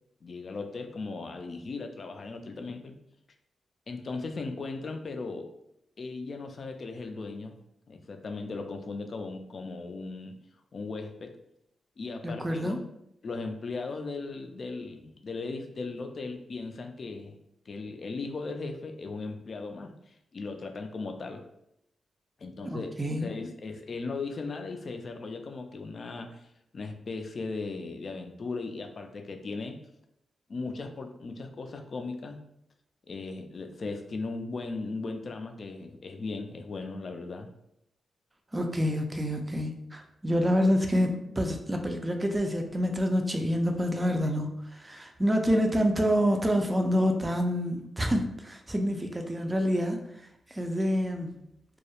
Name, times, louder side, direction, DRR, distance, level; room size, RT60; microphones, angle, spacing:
voice 1, 0.2-3.0 3.9-5.5 6.0-7.6 7.9-10.3 10.7-11.3 12.0-12.8 13.2-17.4 17.7-21.4 22.4-22.9 23.2-29.8 30.5-32.4 33.1-37.5, left 3 dB, 55° left, 5 dB, 0.3 m, -37 dB
voice 2, 12.2-12.8 22.6-23.3 38.5-50.0 50.5-51.4, equal, 20° right, 4 dB, 0.4 m, -27 dB
2.2 x 2.0 x 2.8 m, 0.79 s
cardioid pair, 60°, 0 cm